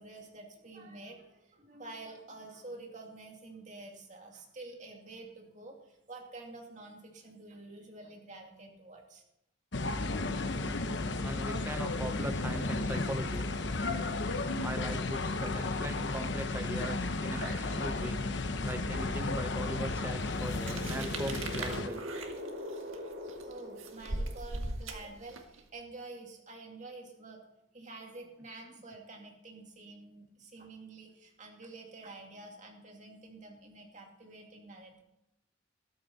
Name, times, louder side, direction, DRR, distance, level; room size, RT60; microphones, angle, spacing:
voice 1, 0.0-9.2 23.4-27.4 27.7-35.0, right 2 dB, 35° right, 1 dB, 2.5 m, -48 dB
sound 1, 9.7-21.9, left 2 dB, 60° left, 0.9 m, -33 dB
voice 2, 11.2-13.5 14.6-18.2 18.6-22.1 28.7-28.8, right 1 dB, 10° right, 8 dB, 0.6 m, -40 dB
sound 2, 17.2-18.2 18.7-18.8 20.0-24.8, equal, 60° right, 2.5 m, -44 dB
sound 3, 20.5-25.6, right 2 dB, 80° right, 1.7 m, -40 dB
13.5 x 12.5 x 4.1 m, 0.84 s
head